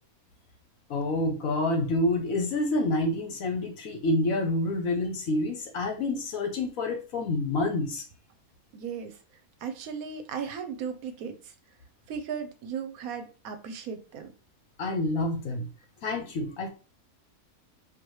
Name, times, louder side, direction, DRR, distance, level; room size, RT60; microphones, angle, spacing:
voice 1, 0.9-8.0 14.8-15.7 16.0-16.7, left 2 dB, 70° left, 4 dB, 1.2 m, -28 dB
voice 2, 8.7-9.2 9.6-11.5 12.1-14.3, right 6 dB, 75° right, 8 dB, 1.1 m, -36 dB
4.5 x 2.7 x 3.1 m, 0.35 s
omnidirectional pair, 1.6 m